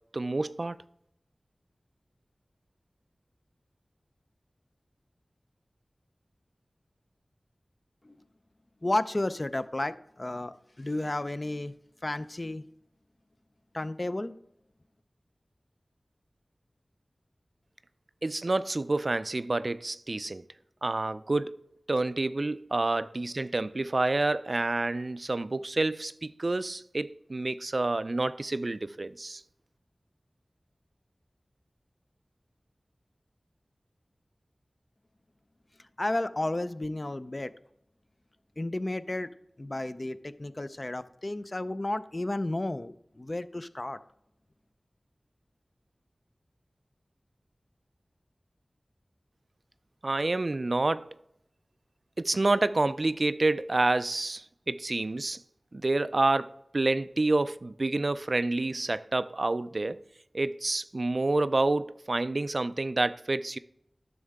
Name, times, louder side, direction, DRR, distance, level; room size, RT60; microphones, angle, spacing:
voice 1, 0.1-0.8 18.2-20.4 20.8-29.4 50.0-51.1 52.2-55.4 55.7-60.0 60.3-63.6, right 2 dB, 55° right, 0.3 m, -28 dB
voice 2, 8.8-11.7 12.0-12.6 13.7-14.3 35.8-37.5 38.6-39.3 39.6-44.0, left 1 dB, 40° left, 0.4 m, -32 dB
11.0 x 6.4 x 3.5 m
wide cardioid pair, 50°, 0 cm